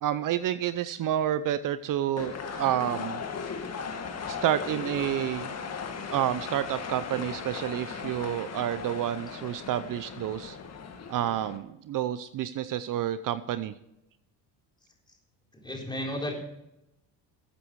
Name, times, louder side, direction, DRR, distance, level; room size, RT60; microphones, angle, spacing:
voice 1, 0.0-3.2 4.3-5.5 6.1-10.6 11.1-13.7, right 11 dB, 55° right, 13 dB, 0.7 m, -29 dB
sound 1, 2.2-11.6, left 5 dB, 40° left, 1.8 m, -37 dB
voice 2, 15.5-16.3, left 1 dB, 10° left, -1 dB, 4.0 m, -33 dB
14.0 x 8.5 x 4.7 m, 0.85 s
cardioid pair, 100°, 39 cm